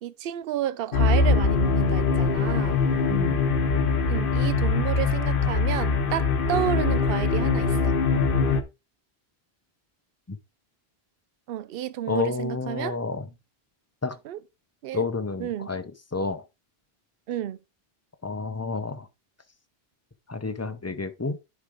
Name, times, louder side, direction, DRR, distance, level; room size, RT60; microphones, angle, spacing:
voice 1, 0.0-2.8 4.1-7.9 11.5-13.0 14.2-14.4 14.8-15.0 15.4-15.7 17.3-17.6, right 12 dB, 70° right, 0.7 m, -31 dB
sound 1, 0.9-8.6, left 4 dB, 60° left, 1.0 m, -22 dB
voice 2, 3.1-3.4 10.3-10.4 12.1-13.3 14.0-14.2 14.9-15.8 16.1-16.4 18.2-19.1 20.3-21.4, left 4 dB, 20° left, 0.6 m, -30 dB
10.0 x 4.6 x 3.6 m
omnidirectional pair, 1.1 m